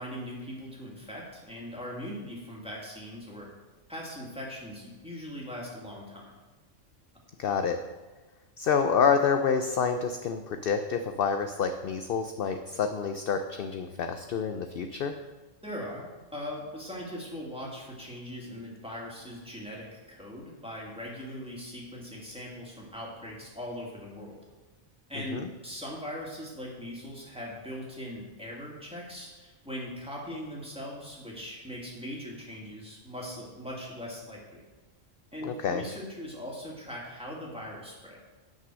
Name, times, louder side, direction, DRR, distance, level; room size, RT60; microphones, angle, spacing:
voice 1, 0.0-3.5 3.9-6.3 15.6-24.4 25.1-34.6 35.3-38.2, equal, 5° right, -4 dB, 2.3 m, -40 dB
voice 2, 7.4-7.8 8.6-15.1 25.3-25.5 35.4-35.9, left 6 dB, 60° left, 7 dB, 0.7 m, -28 dB
9.4 x 6.0 x 6.2 m, 1.2 s
omnidirectional pair, 1.3 m